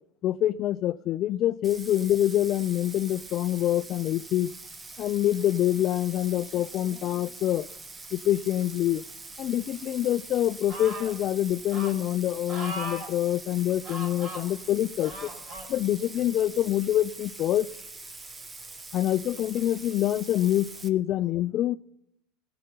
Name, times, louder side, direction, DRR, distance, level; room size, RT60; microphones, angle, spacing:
voice 1, 0.2-4.5 5.0-7.7 8.1-9.0 9.4-15.3 15.7-17.7 18.9-21.8, left 12 dB, 45° left, 0.4 m, -26 dB
Bathtub (filling or washing), 1.6-20.9, right 3 dB, 20° right, 1.0 m, -44 dB
sound 1, 10.7-11.2 11.7-11.9 12.5-13.1 13.8-14.4 15.0-15.7 16.4-16.5, right 1 dB, 45° right, 4.2 m, -38 dB
17.0 x 5.8 x 8.0 m
hypercardioid pair, 100°, 0 cm